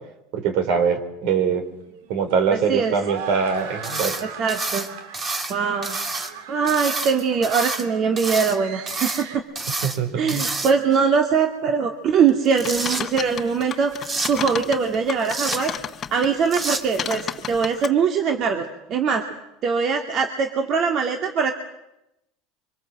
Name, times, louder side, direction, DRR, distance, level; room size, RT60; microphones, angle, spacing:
voice 1, 0.3-1.6 2.1-4.1 9.8-10.4, right 6 dB, 65° right, 8 dB, 4.9 m, -22 dB
sound 1, 1.4-9.4, right 6 dB, 85° right, 3.6 m, -39 dB
sound 2, 3.8-4.2 4.5-5.5 5.8-6.3 6.7-7.8 8.2-8.6 8.9-9.2 9.6-10.0 10.3-11.0 12.3-13.0 14.0-14.3 15.2-15.6 16.5-16.8, right 3 dB, 25° right, 3.2 m, -28 dB
voice 2, 4.2-4.9 5.5-6.0 6.5-9.4 10.1-13.9 14.3-15.7 16.1-19.2 19.6-21.5, right 6 dB, 45° right, 5 dB, 2.5 m, -22 dB
sound 3, 12.5-16.3 16.5-17.9, left 8 dB, 35° left, 1.3 m, -32 dB
26.0 x 25.0 x 7.8 m, 0.88 s
supercardioid pair, 115°, 0 cm